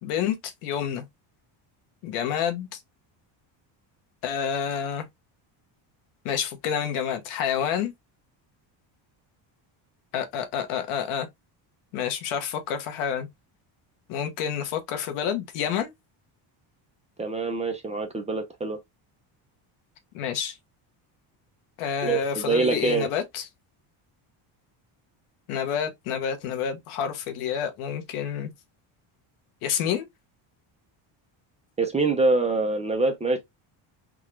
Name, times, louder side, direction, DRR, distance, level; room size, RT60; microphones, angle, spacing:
voice 1, 0.0-1.0 2.0-2.8 4.2-5.0 6.2-7.9 10.1-11.3 11.9-13.3 14.1-15.9 20.1-20.6 21.8-23.5 25.5-28.5 29.6-30.1, left 8 dB, 85° left, 1.1 m, -28 dB
voice 2, 17.2-18.8 22.0-23.1 31.8-33.4, right 3 dB, 15° right, 0.5 m, -25 dB
3.7 x 2.3 x 3.0 m
cardioid pair, 145°, 49 cm